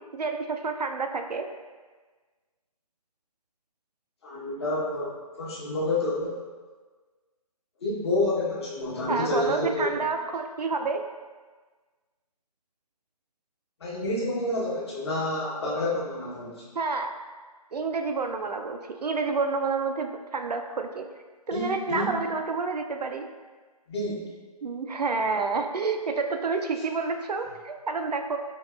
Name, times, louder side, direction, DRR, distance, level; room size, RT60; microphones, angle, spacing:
voice 1, 0.0-1.5 9.1-11.0 16.7-17.1 17.7-21.1 21.5-23.3 24.6-28.4, right 4 dB, 85° right, 5 dB, 0.4 m, -29 dB
voice 2, 4.2-6.4 7.8-10.0 13.8-16.6 21.5-22.1 23.9-24.2, left 2 dB, 40° left, -5 dB, 0.9 m, -29 dB
4.6 x 2.9 x 2.3 m, 1.4 s
figure-of-eight pair, 150°, 20 cm